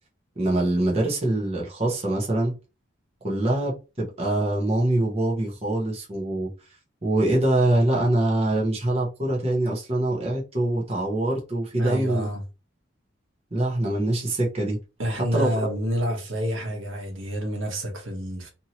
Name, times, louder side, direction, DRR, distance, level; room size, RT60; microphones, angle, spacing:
voice 1, 0.4-2.6 3.2-6.5 7.0-12.3 13.5-14.8 15.3-15.5, right 1 dB, 30° right, 0.8 m, -24 dB
voice 2, 11.8-12.4 15.0-18.5, equal, 75° right, 1.1 m, -28 dB
2.8 x 2.7 x 2.8 m
head